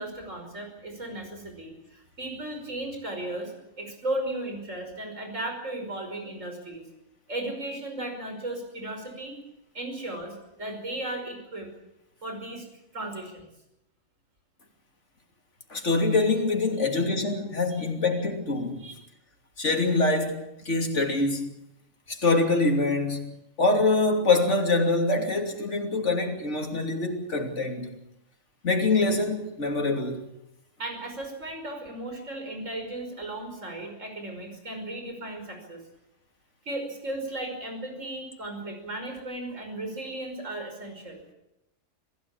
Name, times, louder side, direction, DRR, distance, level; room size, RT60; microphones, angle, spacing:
voice 1, 0.0-6.8 7.3-9.4 9.7-11.7 12.2-12.7 12.9-13.5 17.8-17.9 18.8-19.0 30.8-35.8 36.7-41.2, right 1 dB, 80° right, 6.0 m, -35 dB
voice 2, 15.7-18.8 19.6-21.4 22.1-23.3 23.6-28.0 28.6-30.2, left 3 dB, 65° left, 3.4 m, -25 dB
26.5 x 16.5 x 8.6 m
omnidirectional pair, 1.3 m